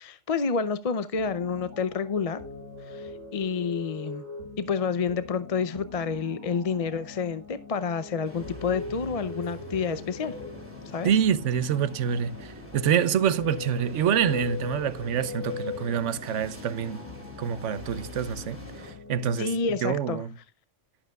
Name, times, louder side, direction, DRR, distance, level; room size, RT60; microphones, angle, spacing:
voice 1, 0.0-2.4 2.8-4.3 4.6-10.3 10.9-11.1 19.4-20.2, left 5 dB, 40° left, 0.5 m, -29 dB
sound 1, 1.1-19.7, left 4 dB, 70° left, 5.0 m, -41 dB
sound 2, 8.2-18.9, left 1 dB, 10° right, 3.2 m, -45 dB
voice 2, 11.0-17.1 17.4-19.5 19.8-20.3, right 8 dB, 80° right, 1.1 m, -26 dB
12.0 x 11.5 x 2.3 m
omnidirectional pair, 1.2 m